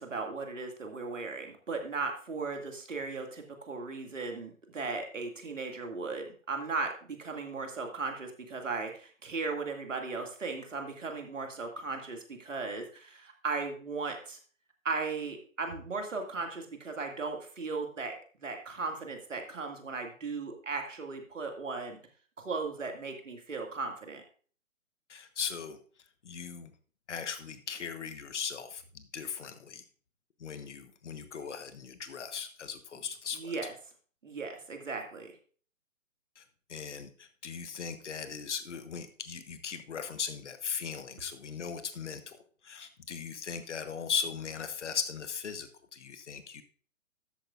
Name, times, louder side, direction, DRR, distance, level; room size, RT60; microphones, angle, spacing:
voice 1, 0.0-14.4 14.8-18.1 18.4-22.0 22.4-24.2 33.3-33.7 34.2-35.3, right 4 dB, 65° right, 4 dB, 2.2 m, -37 dB
voice 2, 25.1-25.8 26.2-26.7 27.1-29.8 30.4-33.5 36.4-36.5 36.7-42.4 42.6-46.6, left 6 dB, 60° left, 10 dB, 1.1 m, -38 dB
13.0 x 8.8 x 2.4 m, 0.44 s
figure-of-eight pair, 135°, 40 cm